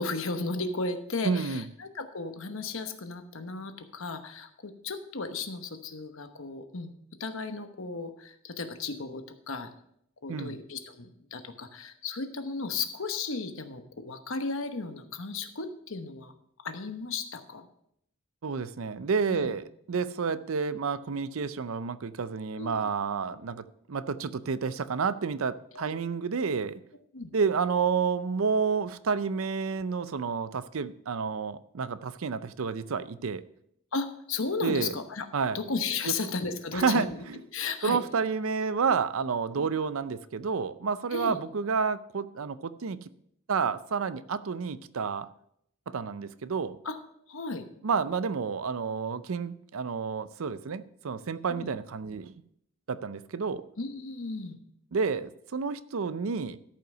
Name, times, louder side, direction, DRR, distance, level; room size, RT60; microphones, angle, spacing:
voice 1, 0.0-6.9 7.2-9.7 10.2-16.3 16.6-17.7 19.3-19.5 22.6-22.9 25.7-25.9 27.1-27.3 33.9-35.3 35.5-37.2 37.5-38.0 39.6-39.7 41.1-41.4 46.8-47.0 47.3-47.6 51.5-51.7 53.8-54.6, left 4 dB, 65° left, 8 dB, 1.0 m, -35 dB
voice 2, 1.2-1.7 10.3-10.6 18.4-26.8 27.3-33.4 34.6-34.9 35.3-35.6 36.1-36.2 36.7-37.4 37.8-43.1 43.5-45.3 45.9-46.8 47.8-52.3 52.9-53.6 54.9-56.6, right 5 dB, 70° right, 14 dB, 0.5 m, -30 dB
13.0 x 5.6 x 5.5 m, 0.72 s
head